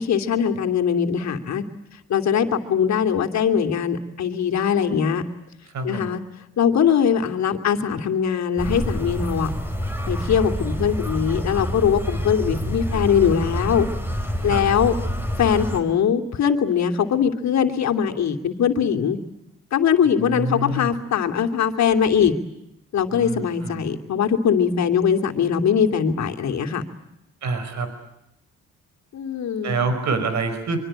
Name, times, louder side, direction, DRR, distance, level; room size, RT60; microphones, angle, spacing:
voice 1, 0.0-1.6 2.1-5.2 5.8-6.2 6.6-9.5 10.1-13.9 14.4-15.0 15.4-19.2 19.7-22.3 22.9-26.8 29.1-29.8, left 7 dB, 65° left, 6 dB, 2.9 m, -21 dB
voice 2, 5.7-6.1 12.4-12.8 14.4-14.6 20.2-20.9 23.1-23.8 27.4-27.9 29.6-30.8, right 3 dB, 65° right, 9 dB, 5.1 m, -27 dB
sound 1, 8.6-15.8, equal, 5° right, 4.7 m, -27 dB
24.5 x 24.5 x 8.9 m, 0.84 s
cardioid pair, 90°, 30 cm